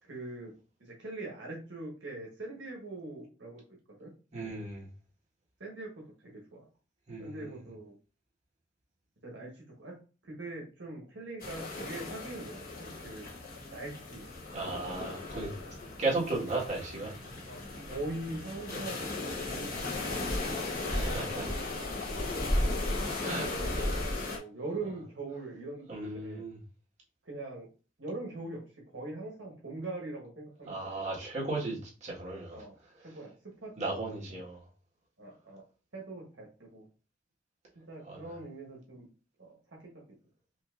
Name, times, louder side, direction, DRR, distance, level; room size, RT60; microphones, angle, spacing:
voice 1, 0.0-0.5 0.8-3.6 4.0-4.1 5.6-5.9 6.2-6.6 7.2-7.9 9.2-10.0 10.2-13.3 13.7-14.3 17.5-19.7 20.0-20.3 20.8-20.9 21.4-22.3 23.4-25.9 26.2-26.4 27.2-27.7 28.0-31.1 32.5-33.3 33.6-34.4 35.2-35.6 35.9-36.8 37.9-39.1 39.4-39.6, right 2 dB, 65° right, -2 dB, 1.2 m, -42 dB
voice 2, 4.3-4.9 7.1-7.5 14.5-15.5 16.0-17.1 18.7-18.8 20.9-21.5 23.2-23.9 25.9-26.6 30.7-32.6 33.8-34.6 38.1-38.3, right 2 dB, 35° right, -4 dB, 1.7 m, -35 dB
Waves at the Wave Organ, 11.4-24.4, left 2 dB, 45° left, 1.1 m, -35 dB
5.4 x 2.7 x 2.5 m, 0.35 s
head